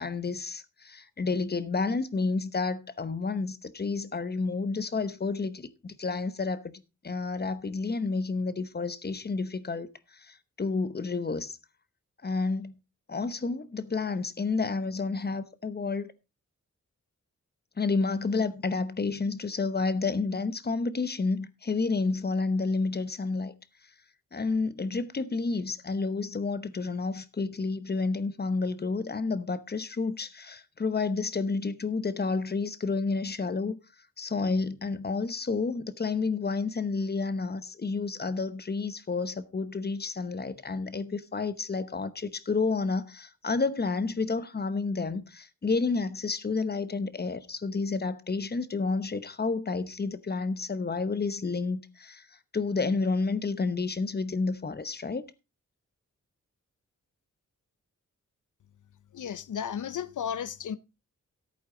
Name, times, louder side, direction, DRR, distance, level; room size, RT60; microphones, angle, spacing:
voice 1, 0.0-6.7 7.0-11.6 12.2-12.8 13.1-16.1 17.8-23.5 24.3-33.8 34.2-52.3 52.5-55.2, left 4 dB, 30° left, 0.9 m, -30 dB
voice 2, 59.1-60.8, left 8 dB, 80° left, 0.7 m, -34 dB
14.5 x 8.7 x 3.8 m
wide cardioid pair, 175°, 30 cm